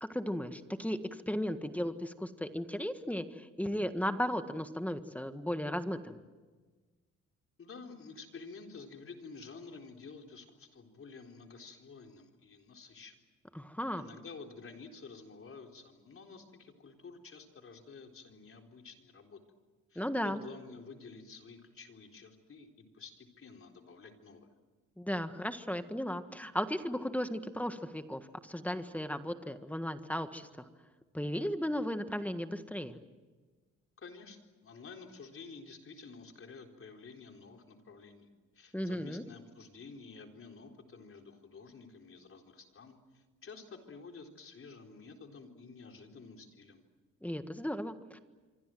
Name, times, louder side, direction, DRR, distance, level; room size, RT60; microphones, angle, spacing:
voice 1, 0.0-6.2 13.5-14.1 19.9-20.4 25.0-30.5 31.1-33.0 38.7-39.2 47.2-48.2, equal, 5° left, 9 dB, 1.7 m, -35 dB
voice 2, 7.6-13.2 14.0-19.4 19.9-24.5 34.0-38.3 38.5-46.9, left 4 dB, 45° left, 3 dB, 4.1 m, -51 dB
26.5 x 24.5 x 7.8 m, 1.3 s
cardioid pair, 90°, 30 cm